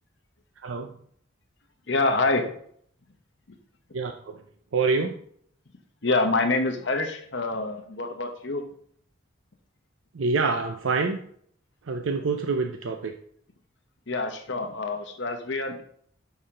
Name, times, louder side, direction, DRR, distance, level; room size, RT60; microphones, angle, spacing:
voice 1, 0.6-0.9 3.9-4.4 4.7-5.1 10.1-11.2 11.9-13.1, right 4 dB, 75° right, 5 dB, 0.5 m, -26 dB
voice 2, 1.9-2.5 6.0-8.6 14.1-15.8, left 3 dB, 60° left, 5 dB, 1.0 m, -26 dB
6.4 x 5.7 x 3.7 m, 0.62 s
head